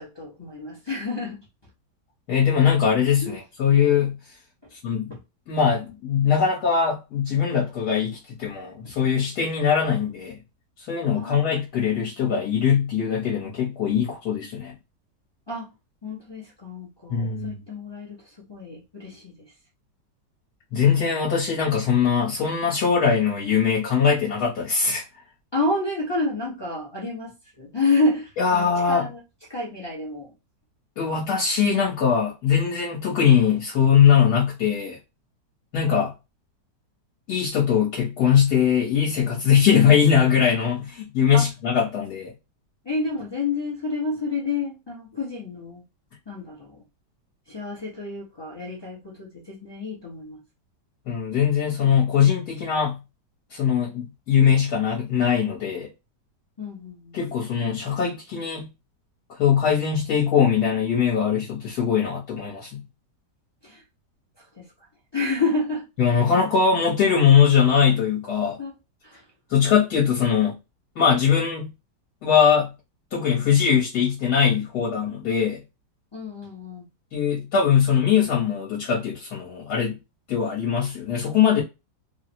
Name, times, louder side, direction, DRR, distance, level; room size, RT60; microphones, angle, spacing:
voice 1, 0.0-1.5 3.2-3.3 5.1-5.2 8.8-8.9 11.1-11.5 15.5-15.7 16.0-19.4 25.5-29.2 29.5-30.3 41.3-41.5 42.8-45.8 46.3-46.8 47.5-50.4 56.6-57.2 63.6-63.8 64.4-64.7 65.1-65.8 68.6-68.7 69.0-69.3 76.1-76.9, left 3 dB, 35° left, 0.4 m, -29 dB
voice 2, 2.3-4.2 4.8-5.1 5.5-10.4 10.8-14.7 17.1-17.6 20.7-25.0 28.4-29.1 31.0-35.0 35.7-36.1 37.3-42.3 51.1-53.0 53.5-55.9 57.1-58.7 59.3-62.8 66.0-68.6 69.5-70.6 71.0-71.7 72.2-72.7 73.1-75.6 77.1-79.9 80.3-81.6, left 7 dB, 65° left, 1.4 m, -21 dB
3.1 x 2.0 x 2.7 m
omnidirectional pair, 1.9 m